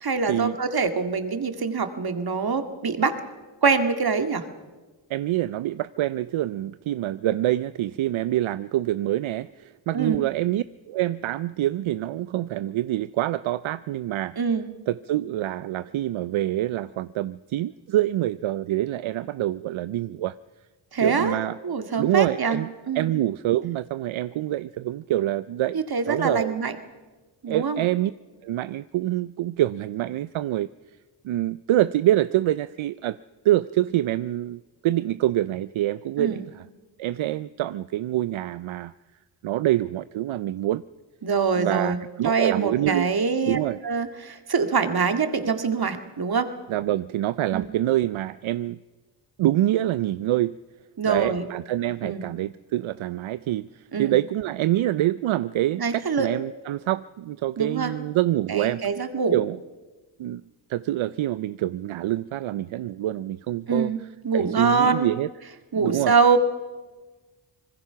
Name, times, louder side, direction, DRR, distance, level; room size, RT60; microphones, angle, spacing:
voice 1, 0.0-3.2 3.6-4.4 9.9-10.2 14.4-14.7 20.9-21.4 21.6-23.1 25.7-26.8 27.4-27.9 36.2-36.5 41.2-42.0 42.2-43.6 43.8-46.5 47.5-47.7 51.0-51.5 52.0-52.2 53.9-54.2 55.8-56.3 57.6-57.9 58.5-59.4 63.7-64.0 64.2-65.1 65.7-66.4, right 5 dB, 50° right, 7 dB, 2.1 m, -24 dB
voice 2, 5.1-14.4 14.9-20.3 21.0-21.6 22.0-22.7 22.9-25.8 26.1-26.6 27.5-28.1 28.4-30.7 31.2-33.2 33.4-36.6 37.0-38.9 39.4-40.8 41.6-43.1 43.4-43.8 46.7-48.8 49.4-50.6 51.1-58.9 59.3-59.6 60.2-60.4 60.7-63.9 64.3-65.3 65.7-66.1, right 14 dB, 80° right, 15 dB, 0.6 m, -26 dB
25.5 x 20.5 x 5.8 m, 1.3 s
cardioid pair, 60°, 47 cm